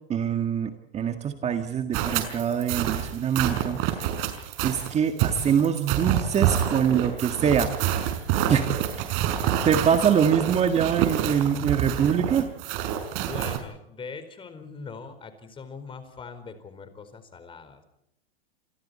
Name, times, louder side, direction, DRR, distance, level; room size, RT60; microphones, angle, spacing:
voice 1, 0.0-4.0 4.6-7.7 8.5-8.7 9.7-12.5, right 8 dB, 20° right, 6 dB, 1.8 m, -24 dB
sound 1, 1.9-13.6, right 10 dB, 45° right, 5.7 m, -27 dB
voice 2, 13.1-17.8, left 5 dB, 15° left, 10 dB, 4.5 m, -41 dB
29.0 x 28.0 x 4.3 m, 0.82 s
supercardioid pair, 145°, 31 cm